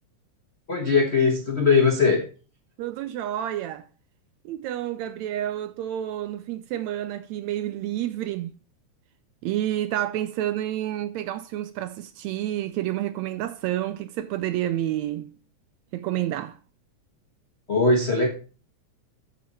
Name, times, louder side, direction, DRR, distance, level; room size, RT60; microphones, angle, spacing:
voice 1, 0.7-2.2 17.7-18.3, left 4 dB, 55° left, 0.7 m, -20 dB
voice 2, 2.8-3.9 4.4-8.5 9.4-15.3 15.9-16.6, right 12 dB, 80° right, 1.6 m, -29 dB
8.4 x 7.4 x 4.1 m
omnidirectional pair, 3.5 m